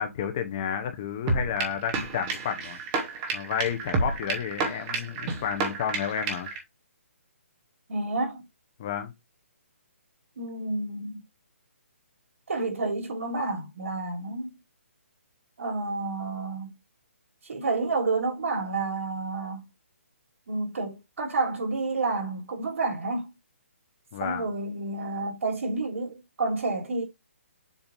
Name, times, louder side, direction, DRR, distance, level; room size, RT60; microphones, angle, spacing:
voice 1, 0.0-2.8 3.3-6.5 8.8-9.1 24.1-24.5, left 8 dB, 20° left, 0.6 m, -31 dB
sound 1, 1.3-6.6, right 3 dB, 15° right, 0.8 m, -30 dB
voice 2, 7.9-8.4 10.4-11.2 12.5-14.6 15.6-16.7 17.4-19.6 20.5-23.3 24.2-27.0, right 3 dB, 70° right, 3.0 m, -30 dB
7.2 x 2.6 x 5.1 m
hypercardioid pair, 175°, 7 cm